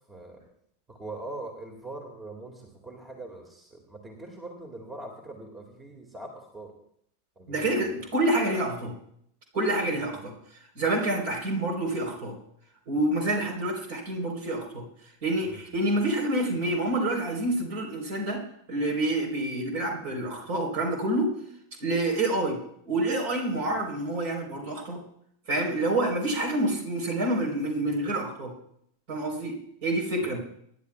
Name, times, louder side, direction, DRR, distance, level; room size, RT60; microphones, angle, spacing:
voice 1, 0.1-0.4 0.9-6.7 7.4-8.0 10.1-10.2 15.4-15.6 23.5-23.8 30.2-30.4, right 2 dB, 15° right, 3 dB, 2.0 m, -42 dB
voice 2, 7.5-8.9 9.5-10.3 10.8-12.4 12.9-14.8 15.2-18.4 18.7-21.3 21.8-22.6 22.9-25.0 25.5-28.5 29.1-30.4, right 1 dB, 45° right, 2 dB, 3.7 m, -27 dB
26.0 x 11.0 x 2.3 m, 0.70 s
figure-of-eight pair, 90°, 0 cm